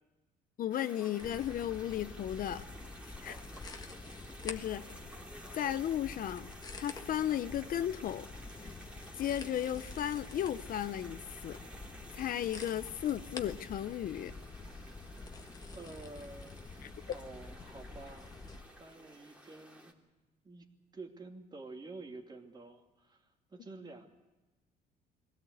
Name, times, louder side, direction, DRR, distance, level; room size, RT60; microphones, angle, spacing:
voice 1, 0.6-2.6 3.0-3.4 4.4-4.8 5.5-6.5 6.8-8.2 9.2-11.6 12.1-14.3 16.8-16.9, left 11 dB, 55° left, 12 dB, 0.8 m, -35 dB
sound 1, 0.7-19.9, equal, 5° right, 3.0 m, -53 dB
sound 2, 1.2-18.6, left 3 dB, 20° left, 1.6 m, -48 dB
voice 2, 15.7-16.7 17.1-18.3 18.8-19.9 20.4-20.7 20.9-23.2 23.5-24.1, right 3 dB, 25° right, 3 dB, 2.7 m, -49 dB
23.0 x 17.0 x 8.1 m, 1.1 s
cardioid pair, 110°, 17 cm